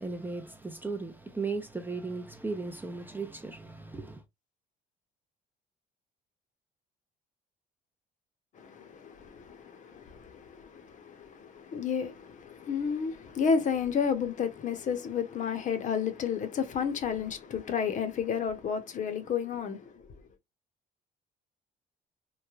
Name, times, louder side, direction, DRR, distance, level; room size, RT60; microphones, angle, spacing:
voice 1, 0.0-4.2, right 3 dB, 10° right, 0.4 m, -36 dB
voice 2, 8.6-20.1, left 6 dB, 50° left, 0.7 m, -32 dB
3.1 x 2.2 x 2.3 m
cardioid pair, 110°, 17 cm